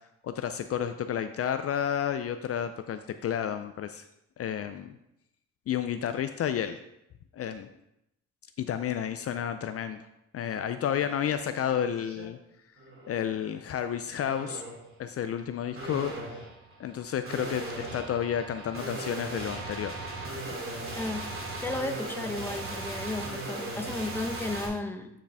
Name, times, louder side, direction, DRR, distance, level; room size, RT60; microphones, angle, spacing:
voice 1, 0.2-4.0 4.4-5.0 5.7-6.8 7.3-7.7 8.6-10.1 10.3-12.4 13.1-14.6 15.0-16.4 16.8-19.9, left 9 dB, 50° left, 9 dB, 0.5 m, -31 dB
sound 1, 10.9-11.1 11.5-12.2 12.8-13.2 14.3-14.9 15.7-24.7, right 2 dB, 45° right, 2.6 m, -38 dB
voice 2, 21.0-21.3 21.6-25.1, left 2 dB, 5° left, 6 dB, 0.8 m, -34 dB
9.1 x 5.1 x 3.5 m, 0.83 s
cardioid pair, 90°, 30 cm